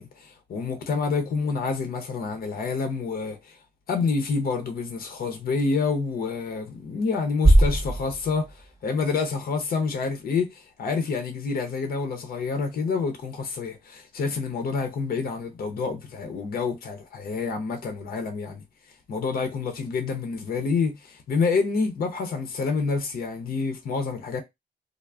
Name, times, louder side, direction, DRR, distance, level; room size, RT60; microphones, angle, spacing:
voice 1, 0.0-3.6 3.9-18.6 19.1-24.4, left 4 dB, 65° left, 0.6 m, -28 dB
sound 1, 7.4-9.5, right 1 dB, 20° right, 0.7 m, -21 dB
2.3 x 2.0 x 3.2 m
cardioid pair, 85°, 16 cm